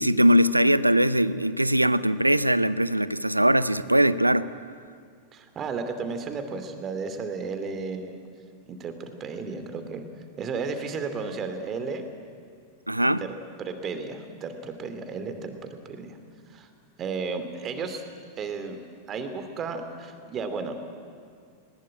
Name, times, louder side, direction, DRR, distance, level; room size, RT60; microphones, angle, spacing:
voice 1, 0.0-4.5 12.9-13.3, equal, 85° right, 17 dB, 0.6 m, -21 dB
voice 2, 5.3-8.2 8.7-10.0 10.4-12.1 13.2-13.3 13.6-15.5 15.8-16.2 16.5-16.7 17.0-18.0 18.4-18.8 19.1-20.8, right 4 dB, 30° right, 7 dB, 2.6 m, -33 dB
20.0 x 19.5 x 9.8 m, 2.2 s
figure-of-eight pair, 90°, 0 cm